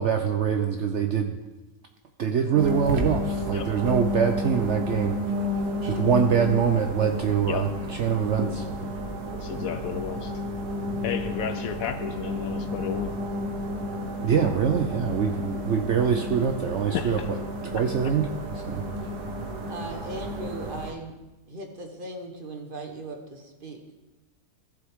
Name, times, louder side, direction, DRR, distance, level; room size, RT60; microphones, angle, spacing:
voice 1, 0.0-1.4 2.2-5.2 5.5-8.6 14.2-17.4 17.6-18.3 18.5-18.8, right 7 dB, 60° right, 5 dB, 0.8 m, -24 dB
sound 1, 2.5-20.9, left 1 dB, 80° right, 1.7 m, -31 dB
voice 2, 9.3-10.4 11.0-13.2 16.9-17.3 17.7-17.8, left 9 dB, 70° left, 9 dB, 0.9 m, -32 dB
voice 3, 19.7-21.1 21.5-23.8, right 2 dB, 35° right, 3 dB, 1.3 m, -38 dB
15.0 x 7.6 x 3.6 m, 1.1 s
omnidirectional pair, 1.7 m